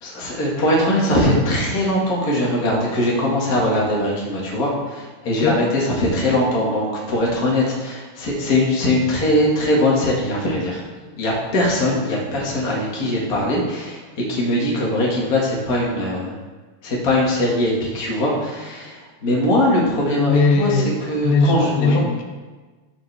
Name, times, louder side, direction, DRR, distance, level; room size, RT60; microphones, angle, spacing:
voice 1, 0.0-10.8 11.2-16.4 16.8-22.0, left 1 dB, 50° left, -4 dB, 1.0 m, -21 dB
voice 2, 20.2-20.9 21.2-22.2, left 3 dB, 90° left, 3 dB, 3.0 m, -18 dB
14.0 x 4.7 x 3.4 m, 1.3 s
omnidirectional pair, 4.7 m